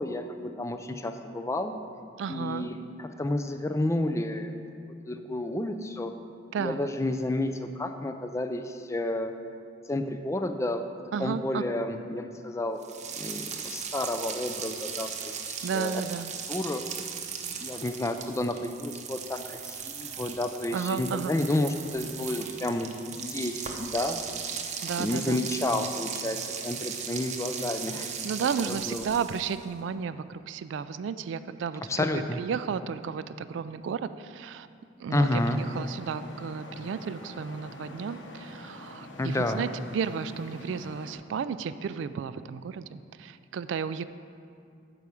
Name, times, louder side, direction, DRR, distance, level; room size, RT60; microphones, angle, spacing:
voice 1, 0.0-1.7 2.3-4.6 5.1-6.1 6.6-9.3 9.9-10.9 11.2-12.8 13.2-16.0 16.5-16.9 17.6-24.2 25.0-28.1 28.7-29.1 31.9-32.4 35.1-35.6 39.2-39.6, left 1 dB, 15° left, 8 dB, 0.4 m, -30 dB
voice 2, 2.2-2.7 6.5-6.9 11.1-11.6 15.6-16.3 20.7-21.3 24.8-25.4 28.2-31.8 32.1-34.7 35.0-44.0, right 6 dB, 75° right, 13 dB, 0.3 m, -33 dB
sound 1, 12.8-29.6, right 7 dB, 40° right, 0.7 m, -37 dB
Traffic noise roadway noise, 35.1-41.1, left 1 dB, 70° left, 0.9 m, -45 dB
9.0 x 4.8 x 7.0 m, 2.4 s
head